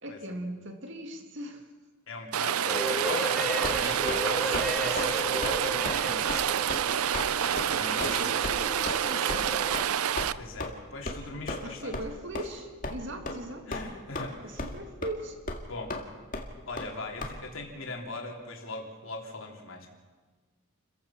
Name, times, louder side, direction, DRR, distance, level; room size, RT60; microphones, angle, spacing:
voice 1, 0.0-1.6 7.9-9.6 11.6-13.7 14.4-15.4, right 1 dB, 55° right, 6 dB, 2.2 m, -39 dB
voice 2, 2.1-7.0 7.3-8.3 10.3-11.9 13.7-14.7 15.7-16.0 16.7-19.9, left 2 dB, 65° left, 1 dB, 3.3 m, -40 dB
Rain, 2.3-10.3, right 9 dB, 80° right, 0.5 m, -28 dB
sound 1, 2.7-9.8, equal, 5° left, 1.3 m, -35 dB
sound 2, 3.6-4.2 4.5-4.7 5.0-5.1 5.4-5.6 5.9-6.0 6.3-6.4 6.7-6.8 7.1-7.3 7.6-7.7 8.0-8.1 8.4-8.5 8.9-9.0 9.3-9.4 9.7-9.9 10.2-10.3 10.6-10.7 11.1-11.2 11.5-11.6 11.9-12.1 12.3-12.4 12.8-13.0 13.3-13.4 13.7-14.3 14.6-14.8 15.0-15.1 15.5-15.6 15.9-16.0 16.3-16.5 16.8-16.9 17.2-17.3, left 2 dB, 35° left, 2.0 m, -34 dB
29.5 x 15.0 x 5.8 m, 1.4 s
head